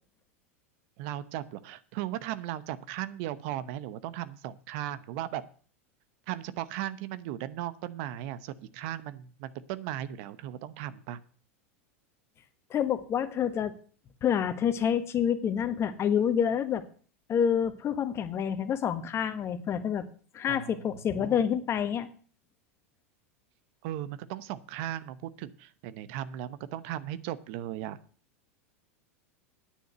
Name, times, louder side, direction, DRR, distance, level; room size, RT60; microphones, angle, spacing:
voice 1, 1.0-5.4 6.3-11.2 20.5-20.7 21.1-21.4 23.8-28.0, right 12 dB, 60° right, 15 dB, 0.8 m, -37 dB
voice 2, 12.7-13.7 14.2-16.8 17.3-20.1 20.3-22.1, left 8 dB, 35° left, 10 dB, 1.3 m, -28 dB
9.6 x 6.4 x 7.9 m, 0.43 s
hypercardioid pair, 95°, 8 cm